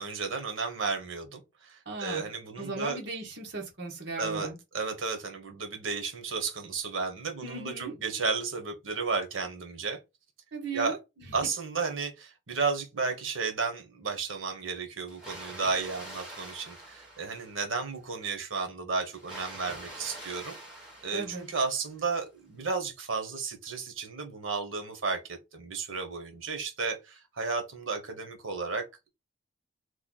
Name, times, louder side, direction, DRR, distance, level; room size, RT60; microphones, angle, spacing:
voice 1, 0.0-3.0 4.2-4.5 4.7-10.0 10.7-11.0 11.3-20.6 21.0-29.1, right 4 dB, 90° right, 1.1 m, -33 dB
voice 2, 1.8-2.3 2.6-4.6 7.4-7.9 10.5-11.5 21.1-21.4, right 3 dB, 65° right, 1.2 m, -37 dB
Water, 15.1-17.9 19.1-21.9, right 1 dB, 5° right, 1.2 m, -45 dB
3.2 x 2.3 x 3.8 m
head